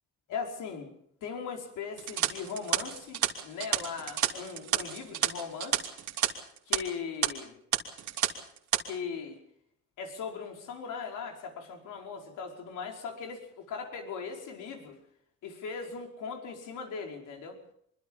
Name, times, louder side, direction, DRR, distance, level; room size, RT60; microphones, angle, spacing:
voice 1, 0.3-0.9 1.2-5.8 6.7-7.6 8.9-9.4 10.0-15.0 15.4-17.6, left 5 dB, 80° left, 2 dB, 5.2 m, -39 dB
sound 1, 2.0-6.3 6.6-6.8 7.2-7.3 7.7-8.3 8.6-8.8, right 10 dB, 75° right, 2.9 m, -29 dB
24.5 x 23.5 x 5.5 m, 0.67 s
cardioid pair, 90°, 30 cm